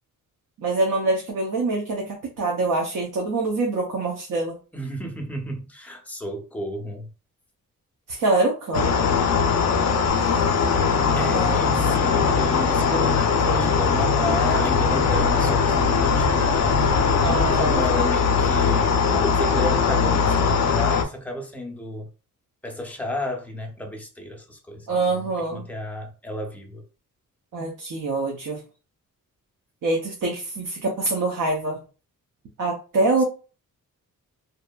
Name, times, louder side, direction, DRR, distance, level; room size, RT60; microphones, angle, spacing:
voice 1, 0.6-4.6 8.1-8.9 11.2-11.6 17.2-17.8 24.9-25.6 27.5-28.6 29.8-31.8 32.6-33.2, right 2 dB, 65° right, 0.7 m, -25 dB
voice 2, 4.7-7.1 11.2-16.9 17.4-22.1 22.6-26.8 33.2-33.3, left 1 dB, 5° left, 0.5 m, -32 dB
sound 1, 8.7-21.0, left 5 dB, 55° left, 0.4 m, -20 dB
sound 2, 10.1-17.8, right 2 dB, 85° right, 1.3 m, -34 dB
Wind, 14.4-19.7, left 1 dB, 30° right, 0.9 m, -37 dB
2.6 x 2.5 x 2.2 m
wide cardioid pair, 125°, 34 cm